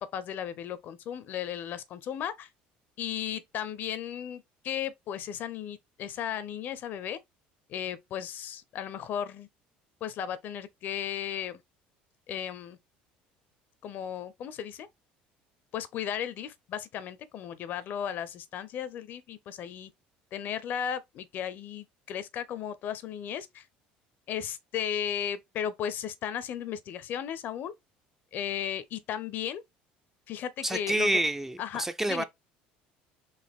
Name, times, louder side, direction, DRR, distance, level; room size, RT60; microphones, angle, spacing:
voice 1, 0.0-2.5 3.0-7.2 7.7-9.5 10.0-11.6 12.3-12.8 13.8-14.9 15.7-19.9 20.3-23.6 24.3-27.7 28.3-29.6 30.3-31.1 31.6-32.2, left 9 dB, 55° left, 0.6 m, -35 dB
voice 2, 30.6-32.2, right 1 dB, 10° right, 0.4 m, -28 dB
4.1 x 2.6 x 3.5 m
supercardioid pair, 100°, 4 cm